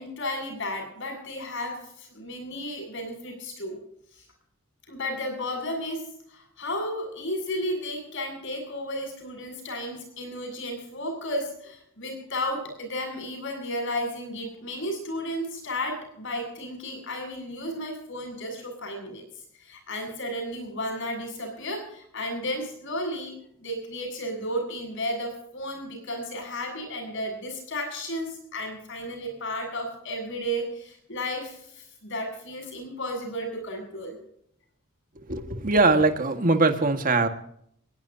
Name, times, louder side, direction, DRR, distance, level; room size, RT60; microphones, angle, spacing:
voice 1, 0.0-3.8 4.1-4.2 4.9-6.0 6.3-19.2 19.6-34.2, equal, 65° left, 4 dB, 7.7 m, -33 dB
voice 2, 35.2-37.3, right 3 dB, 40° right, 6 dB, 1.8 m, -22 dB
22.5 x 19.5 x 2.9 m, 0.69 s
head